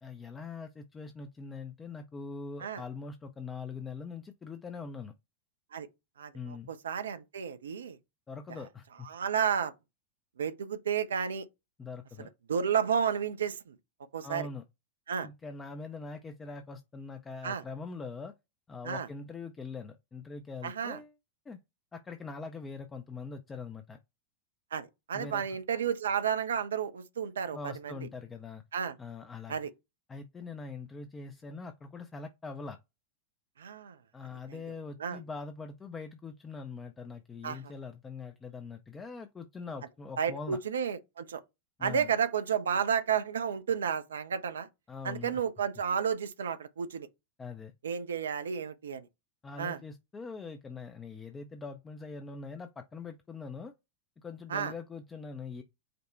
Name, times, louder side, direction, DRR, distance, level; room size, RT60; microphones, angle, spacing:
voice 1, 0.0-5.1 6.3-6.7 8.3-9.1 11.8-12.3 14.2-14.6 15.2-18.3 18.7-21.1 21.5-21.6 21.9-24.0 25.1-25.4 27.5-28.6 29.0-29.5 30.1-32.8 34.1-40.6 41.8-42.1 44.9-45.4 47.4-47.7 49.4-53.7 54.2-55.6, left 4 dB, 15° left, 0.4 m, -42 dB
voice 2, 6.2-8.0 9.0-9.7 10.4-11.5 12.2-13.8 14.1-14.5 15.1-15.3 17.4-17.6 18.8-19.1 20.6-21.0 24.7-28.0 28.7-28.9 29.5-29.7 33.6-34.0 34.5-34.6 35.0-35.2 37.4-37.7 40.2-41.4 41.8-44.7 45.0-47.1 47.8-49.1 49.6-49.8 54.5-54.7, right 7 dB, 65° right, 0.4 m, -32 dB
5.1 x 2.1 x 4.3 m
figure-of-eight pair, 90°, 0 cm